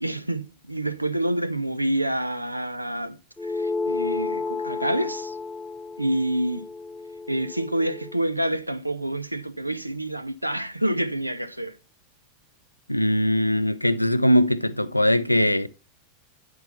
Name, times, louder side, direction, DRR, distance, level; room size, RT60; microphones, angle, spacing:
voice 1, 0.0-5.4 6.0-6.7 7.3-11.8, right 1 dB, 90° right, 0.5 m, -27 dB
sound 1, 3.4-8.2, left 3 dB, 10° left, 0.5 m, -32 dB
voice 2, 12.9-15.7, equal, 90° left, 0.4 m, -21 dB
9.9 x 4.6 x 5.6 m
figure-of-eight pair, 85°, 0 cm